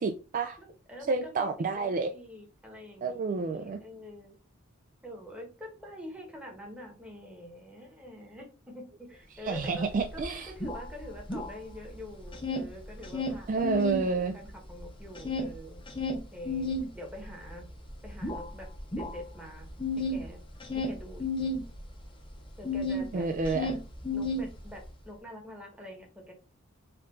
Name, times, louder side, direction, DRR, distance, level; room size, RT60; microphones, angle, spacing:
voice 1, 0.0-0.6 1.1-2.1 3.0-3.8 9.4-10.5 13.5-14.3 23.1-23.7, right 4 dB, 40° right, 0.3 m, -29 dB
voice 2, 0.6-4.4 5.0-15.8 16.3-17.7 18.0-19.7 20.1-20.4 20.7-21.3 22.6-23.3 24.1-26.3, left 1 dB, 5° right, 1.1 m, -46 dB
sound 1, 9.6-9.7 9.9-11.9 12.2-14.1 14.4-23.1 23.4-24.9, left 2 dB, 25° left, 0.7 m, -33 dB
4.5 x 2.5 x 3.7 m
head